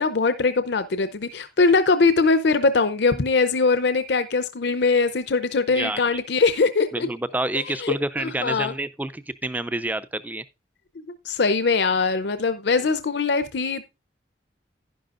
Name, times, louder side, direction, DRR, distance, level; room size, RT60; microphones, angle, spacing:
voice 1, 0.0-7.1 7.7-8.7 11.0-13.8, left 4 dB, 65° left, 0.6 m, -22 dB
voice 2, 5.7-6.0 6.9-10.4, right 2 dB, 10° right, 0.4 m, -28 dB
11.0 x 10.5 x 2.5 m
head